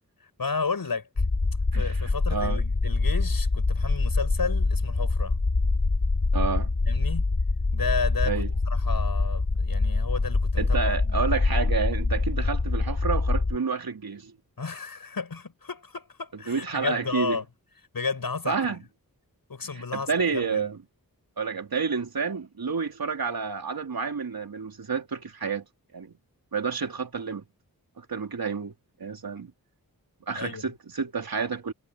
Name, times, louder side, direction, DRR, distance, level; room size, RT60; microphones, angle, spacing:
voice 1, 0.2-1.2 1.7-5.4 6.9-7.2 7.7-8.3 8.7-11.2 14.6-17.5 17.9-18.8 19.5-20.7 30.3-30.6, left 4 dB, 75° left, 7.6 m, -33 dB
sound 1, 1.2-13.6, left 3 dB, 40° left, 2.2 m, -25 dB
voice 2, 1.7-2.6 6.3-6.7 8.3-8.5 10.6-14.3 16.5-17.4 18.5-18.8 19.9-20.8 21.4-25.6 25.9-26.1 26.5-27.4 28.0-28.7 29.0-29.5 30.3-31.7, right 5 dB, 80° right, 3.6 m, -29 dB
wide cardioid pair, 80°, 35 cm